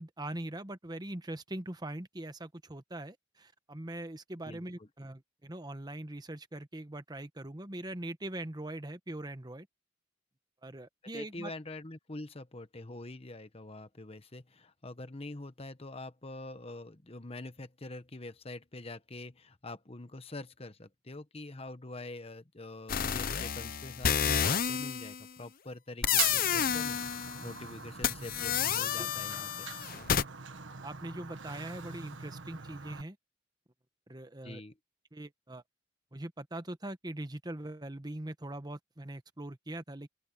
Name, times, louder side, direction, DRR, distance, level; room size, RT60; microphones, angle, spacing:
voice 1, 0.0-9.7 10.6-11.5 29.0-29.1 30.8-33.2 34.1-34.6 35.1-35.6 36.1-40.1, right 1 dB, 20° right, 1.1 m, -42 dB
voice 2, 4.5-4.9 11.1-29.7 34.4-34.7, left 2 dB, 30° left, 1.2 m, -45 dB
sound 1, 22.9-25.2 26.0-27.6 28.0-30.2, left 8 dB, 50° left, 0.7 m, -30 dB
Fire, 26.0-33.0, right 7 dB, 90° right, 1.5 m, -42 dB
open air
head